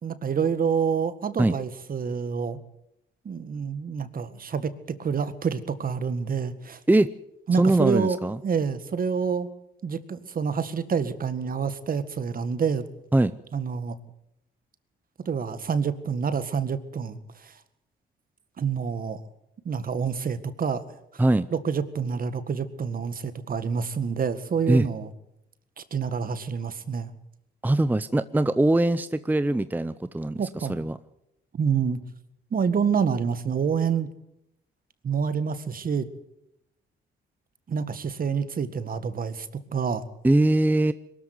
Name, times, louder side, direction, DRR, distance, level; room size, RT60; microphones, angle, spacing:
voice 1, 0.0-2.6 3.3-6.8 7.5-8.2 8.4-9.5 9.8-12.9 13.5-14.0 15.3-17.6 18.6-19.2 19.7-20.8 21.5-25.1 25.8-27.1 30.4-30.8 31.5-32.0 32.5-34.1 35.0-36.1 37.7-40.0, right 6 dB, 45° right, 12 dB, 1.8 m, -27 dB
voice 2, 7.6-8.4 13.1-13.3 21.2-21.5 24.7-24.9 27.6-31.0 40.2-40.9, right 2 dB, 10° right, 13 dB, 0.7 m, -22 dB
22.5 x 13.5 x 9.5 m, 0.80 s
cardioid pair, 90°, 20 cm